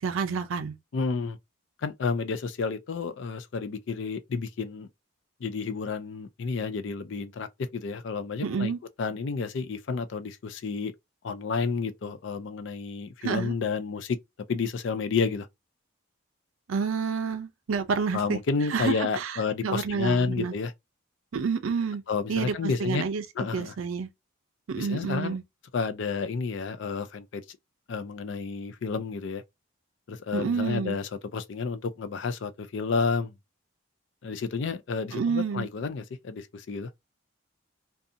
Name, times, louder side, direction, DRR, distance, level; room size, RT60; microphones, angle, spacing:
voice 1, 0.0-0.8 8.4-8.8 13.2-13.5 16.7-18.4 18.7-20.5 21.3-22.0 22.3-23.2 23.5-24.1 24.7-25.4 30.3-31.0 35.1-35.7, right 5 dB, 75° right, 0.4 m, -29 dB
voice 2, 0.9-1.4 1.8-4.9 5.4-8.7 9.0-10.9 11.2-14.2 14.5-15.5 18.1-20.7 22.1-23.0 23.4-23.7 24.8-25.4 25.7-27.6 27.9-29.4 30.1-33.3 34.2-36.9, left 4 dB, 60° left, 0.4 m, -30 dB
2.5 x 2.3 x 2.6 m
head